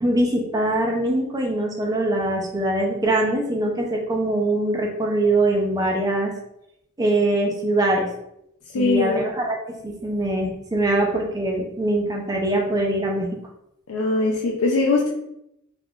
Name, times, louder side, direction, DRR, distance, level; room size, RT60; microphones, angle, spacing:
voice 1, 0.0-6.3 7.0-8.1 8.7-13.3, right 1 dB, 20° right, 0 dB, 0.4 m, -23 dB
voice 2, 8.7-9.2 13.9-15.1, left 3 dB, 90° left, -1 dB, 0.4 m, -21 dB
3.4 x 2.4 x 2.3 m, 0.80 s
head